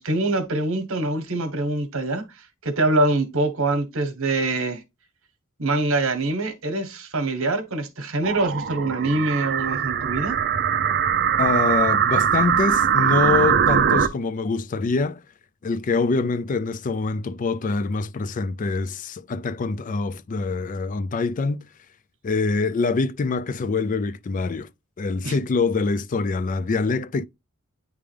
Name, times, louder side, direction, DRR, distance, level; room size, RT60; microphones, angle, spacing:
voice 1, 0.0-2.3 2.6-4.8 5.6-10.4 25.2-25.4, right 2 dB, 65° right, 1.4 m, -24 dB
sound 1, 8.2-14.1, right 8 dB, 50° right, 0.6 m, -21 dB
voice 2, 11.4-15.2 15.6-21.7 22.2-24.7 25.0-27.3, left 4 dB, 40° left, 0.4 m, -25 dB
9.5 x 3.5 x 3.4 m
head